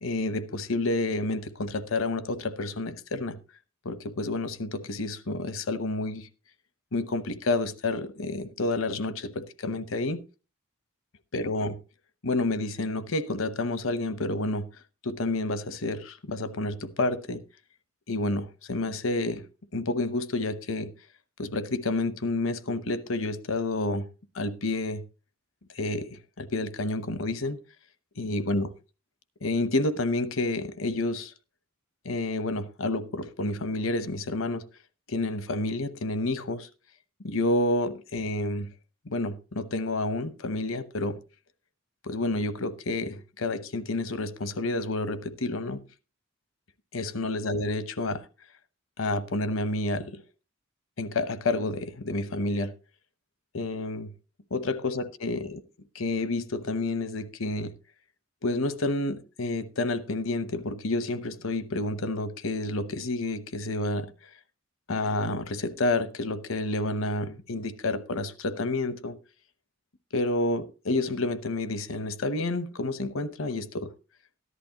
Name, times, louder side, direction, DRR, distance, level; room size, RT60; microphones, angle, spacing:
voice 1, 0.0-3.4 3.8-6.3 6.9-10.2 11.3-11.7 12.2-14.7 15.0-17.4 18.1-19.4 19.7-20.9 21.4-24.1 24.3-25.0 25.7-27.6 28.2-28.7 29.4-31.3 32.0-34.7 35.1-36.7 37.2-38.7 39.1-41.2 42.0-45.8 46.9-48.2 49.0-50.2 51.0-52.7 53.5-54.1 54.5-55.6 55.9-57.7 58.4-64.1 64.9-69.2 70.1-73.9, left 2 dB, 70° left, 0.9 m, -29 dB
14.0 x 11.0 x 2.9 m
head